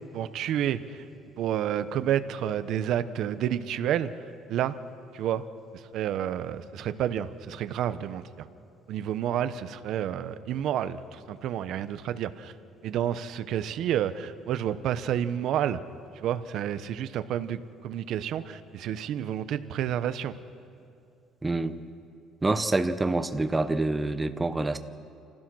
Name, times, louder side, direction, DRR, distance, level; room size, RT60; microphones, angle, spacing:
voice 1, 0.1-1.0 1.4-4.1 4.5-4.7 5.1-5.4 5.7-8.5 8.9-12.5 12.8-15.8 16.1-20.3, right 10 dB, 55° right, 12 dB, 0.8 m, -30 dB
voice 2, 21.4-21.8 22.4-24.8, right 2 dB, 10° right, 10 dB, 0.7 m, -26 dB
28.0 x 16.0 x 6.2 m, 2.5 s
cardioid pair, 165°, 0 cm